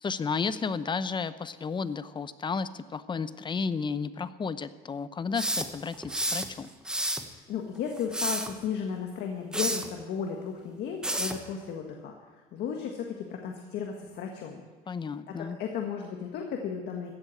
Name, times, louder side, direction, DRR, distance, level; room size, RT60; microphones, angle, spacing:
voice 1, 0.0-6.7 14.9-15.6, left 5 dB, 30° left, 14 dB, 0.7 m, -32 dB
sound 1, 5.3-6.5 6.8-7.3 8.0-8.5 9.5-9.9 11.0-11.4, right 1 dB, 5° right, 1.1 m, -30 dB
voice 2, 7.3-12.1 12.5-14.6 15.3-17.1, left 7 dB, 75° left, 2 dB, 1.6 m, -34 dB
15.0 x 8.1 x 8.8 m, 1.3 s
cardioid pair, 110°, 17 cm